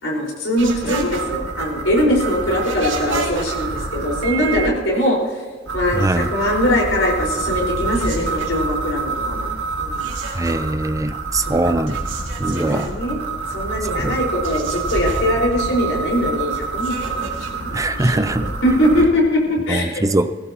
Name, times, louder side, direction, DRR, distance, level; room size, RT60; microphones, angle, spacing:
voice 1, 0.0-5.4 5.7-9.5 9.8-10.1 11.4-11.7 12.5-13.2 13.5-18.3 18.6-20.1, left 1 dB, 85° left, -3 dB, 4.7 m, -21 dB
sound 1, 0.6-4.7 5.7-19.1, right 4 dB, 85° right, 2.3 m, -27 dB
voice 2, 5.9-6.3 10.3-11.9 12.4-12.9 13.8-14.2 17.7-18.5 19.7-20.3, right 2 dB, 15° right, 11 dB, 0.6 m, -21 dB
18.0 x 15.5 x 2.9 m, 1.5 s
head